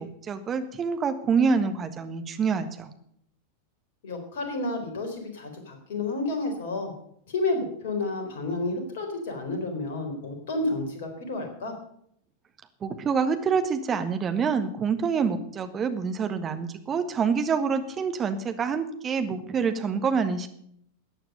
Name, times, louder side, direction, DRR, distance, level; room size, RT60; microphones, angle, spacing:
voice 1, 0.0-2.9 12.8-20.5, right 5 dB, 25° right, 8 dB, 1.5 m, -26 dB
voice 2, 4.0-6.9 7.3-11.7, left 2 dB, 55° left, 5 dB, 4.0 m, -30 dB
14.5 x 9.0 x 6.7 m, 0.68 s
figure-of-eight pair, 90°, 0 cm